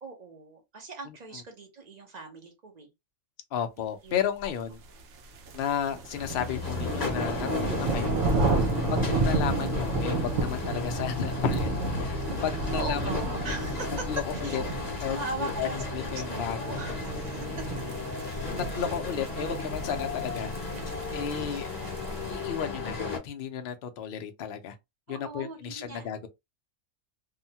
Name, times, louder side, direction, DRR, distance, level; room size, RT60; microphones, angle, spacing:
voice 1, 0.0-2.9 3.8-4.2 9.1-9.4 12.2-12.3 12.7-13.9 14.4-14.6 15.1-17.5 18.2-18.6 21.3-21.6 25.1-26.1, right 3 dB, 45° right, 0.5 m, -40 dB
voice 2, 3.5-4.8 5.5-8.2 8.9-11.7 12.0-13.5 14.1-14.6 15.0-16.9 17.5-17.9 18.4-20.5 21.1-21.7 22.3-24.7 25.1-26.3, left 8 dB, 65° left, 0.6 m, -33 dB
sound 1, 5.0-22.5, right 3 dB, 65° right, 0.9 m, -32 dB
sound 2, 6.1-23.2, left 4 dB, 30° left, 1.3 m, -35 dB
2.7 x 2.2 x 2.7 m
omnidirectional pair, 1.5 m